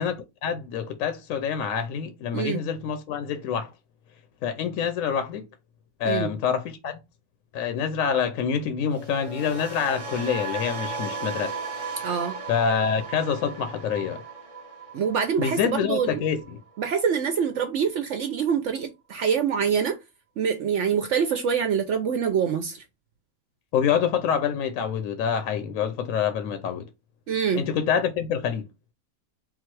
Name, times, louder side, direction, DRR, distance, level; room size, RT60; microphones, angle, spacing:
voice 1, 0.0-3.7 4.4-5.4 6.0-7.0 7.5-11.5 12.5-14.2 15.4-16.6 23.7-26.8 27.5-28.6, left 7 dB, 65° left, 0.9 m, -26 dB
sound 1, 8.9-17.0 17.3-17.6, right 4 dB, 35° right, 0.5 m, -36 dB
voice 2, 12.0-12.4 14.9-16.2 16.8-20.0 20.4-22.8 27.3-27.6, right 7 dB, 65° right, 0.7 m, -25 dB
3.9 x 2.3 x 4.4 m
omnidirectional pair, 1.7 m